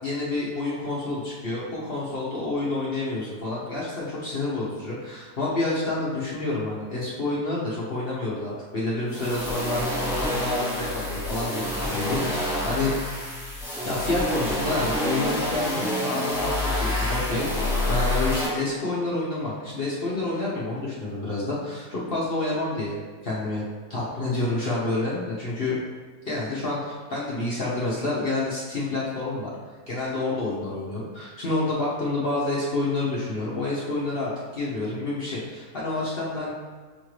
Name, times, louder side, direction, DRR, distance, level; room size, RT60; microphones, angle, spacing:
voice 1, 0.0-13.0 13.8-23.0 23.2-23.6 23.9-25.8 26.3-29.5 29.9-36.5, left 2 dB, 50° left, -7 dB, 0.8 m, -28 dB
sound 1, 9.1-18.5, left 1 dB, ahead, 0.6 m, -27 dB
6.4 x 2.5 x 3.1 m, 1.4 s
omnidirectional pair, 1.6 m